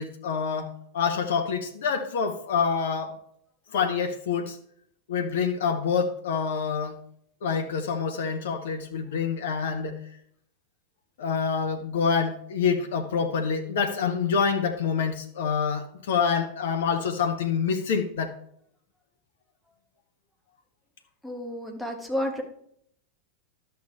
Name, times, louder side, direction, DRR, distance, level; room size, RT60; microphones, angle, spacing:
voice 1, 0.0-3.1 3.7-4.6 5.1-7.0 7.4-10.0 11.2-18.3, left 6 dB, 60° left, 6 dB, 1.0 m, -27 dB
voice 2, 21.2-22.4, left 1 dB, ahead, 1 dB, 1.6 m, -31 dB
11.5 x 6.9 x 3.3 m, 0.68 s
figure-of-eight pair, 90°, 0 cm